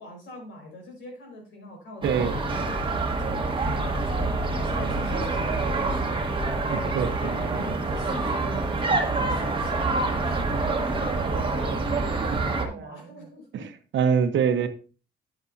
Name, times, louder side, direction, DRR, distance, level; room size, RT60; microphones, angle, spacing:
voice 1, 0.0-2.8 3.2-6.2 6.7-13.7, left 1 dB, 70° left, 1 dB, 4.8 m, -41 dB
sound 1, 2.0-12.7, right 3 dB, 25° right, 1.4 m, -26 dB
voice 2, 2.0-2.3 6.6-7.3 11.0-11.8 12.6-13.3 13.5-13.7 13.9-14.7, right 7 dB, 70° right, 9 dB, 1.1 m, -26 dB
9.8 x 8.2 x 2.7 m, 0.35 s
cardioid pair, 90°, 20 cm